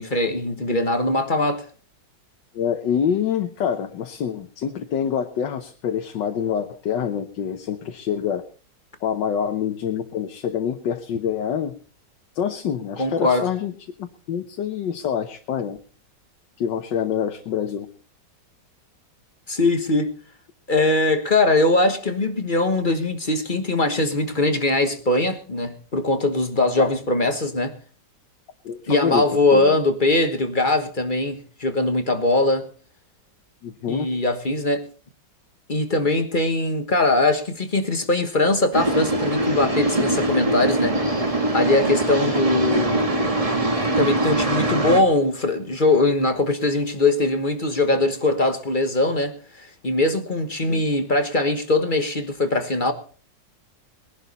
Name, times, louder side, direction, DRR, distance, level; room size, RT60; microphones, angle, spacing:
voice 1, 0.0-1.6 13.0-13.5 19.5-20.1 20.7-27.7 28.9-32.7 33.9-34.8 35.7-43.0 44.0-52.9, left 2 dB, 30° left, 1.3 m, -21 dB
voice 2, 2.5-8.4 9.0-11.7 12.3-13.7 14.0-15.8 16.6-17.9 26.8-26.9 28.6-29.3 29.5-29.8 33.6-34.1 50.7-50.8, left 8 dB, 90° left, 1.7 m, -26 dB
sound 1, 38.7-45.0, right 1 dB, 20° right, 1.7 m, -22 dB
21.0 x 11.0 x 4.1 m
omnidirectional pair, 1.9 m